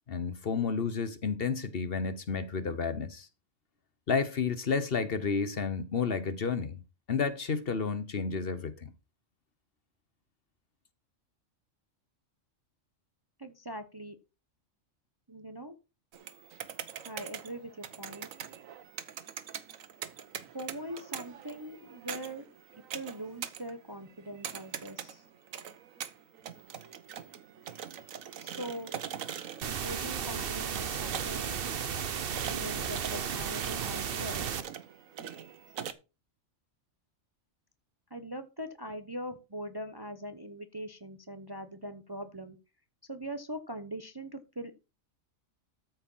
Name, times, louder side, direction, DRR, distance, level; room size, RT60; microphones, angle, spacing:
voice 1, 0.1-3.3 4.1-6.8 7.1-8.9, left 5 dB, 50° left, 1.1 m, -31 dB
voice 2, 13.4-14.2 15.3-15.7 17.0-18.3 20.5-22.5 22.9-25.2 28.4-28.9 29.8-34.5 38.1-42.6 43.1-44.7, right 1 dB, 20° right, 0.7 m, -42 dB
sound 1, 16.1-35.9, right 9 dB, 85° right, 1.3 m, -43 dB
sound 2, 29.6-34.6, right 7 dB, 50° right, 0.9 m, -34 dB
13.5 x 4.6 x 5.5 m
omnidirectional pair, 1.4 m